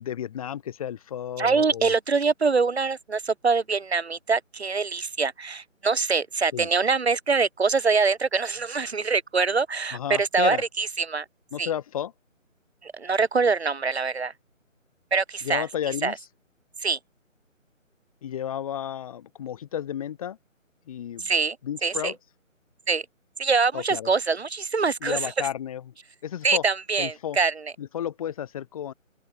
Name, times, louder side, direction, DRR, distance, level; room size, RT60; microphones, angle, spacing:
voice 1, 0.0-1.9 6.5-6.7 9.9-10.6 11.5-12.1 15.4-16.1 18.2-20.4 20.9-21.3 21.6-22.2 23.7-24.1 25.0-25.9 26.2-26.6 27.0-27.4 27.8-28.9, left 10 dB, 25° left, 7.4 m, -32 dB
voice 2, 1.4-11.2 11.6-11.7 12.8-14.3 15.1-15.7 16.0-16.1 16.8-17.0 21.2-21.6 21.8-22.1 22.9-23.0 23.4-25.3 26.4-27.7, right 4 dB, 50° right, 6.5 m, -24 dB
open air
figure-of-eight pair, 155°, 40 cm